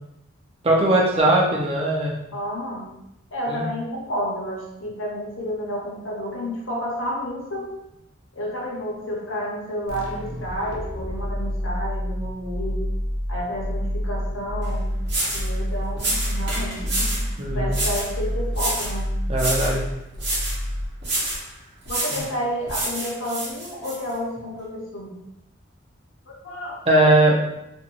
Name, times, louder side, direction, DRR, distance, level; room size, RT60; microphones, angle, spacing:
voice 1, 0.6-2.2 3.5-3.7 17.4-17.7 19.3-19.8 22.1-22.2 26.9-27.5, right 1 dB, 30° right, -2 dB, 0.5 m, -19 dB
voice 2, 2.3-2.9 3.3-7.8 8.3-12.9 13.3-14.9 15.2-19.1 21.9-25.1 26.3-26.8, equal, 80° left, -2 dB, 0.7 m, -30 dB
sound 1, 9.9-21.3, equal, 45° left, 0.5 m, -28 dB
sound 2, 14.6-14.7 15.1-15.5 16.0-17.3 17.7-18.1 18.5-19.0 19.3-19.8 20.2-20.6 21.0-21.4 21.9-22.3 22.7-24.0, right 1 dB, 55° right, 0.9 m, -27 dB
2.6 x 2.2 x 2.8 m, 0.86 s
head